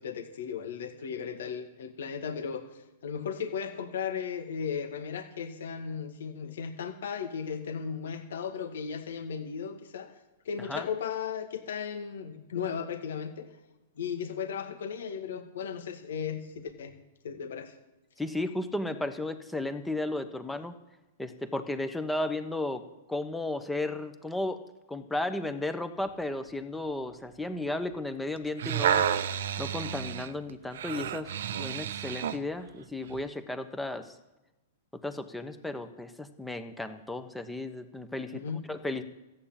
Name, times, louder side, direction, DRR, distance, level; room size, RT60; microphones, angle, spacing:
voice 1, 0.0-2.6 3.0-10.1 10.5-13.5 14.0-16.9 17.2-17.7 38.3-38.7, left 7 dB, 75° left, 6 dB, 1.8 m, -36 dB
voice 2, 18.2-20.7 21.2-22.8 23.1-24.6 24.9-29.0 29.6-34.1 34.9-39.0, left 2 dB, 5° left, 9 dB, 1.2 m, -34 dB
sound 1, 28.4-32.4 33.1-33.2, right 9 dB, 70° right, 0.8 m, -30 dB
14.0 x 8.6 x 8.7 m, 1.0 s
hypercardioid pair, 130°, 0 cm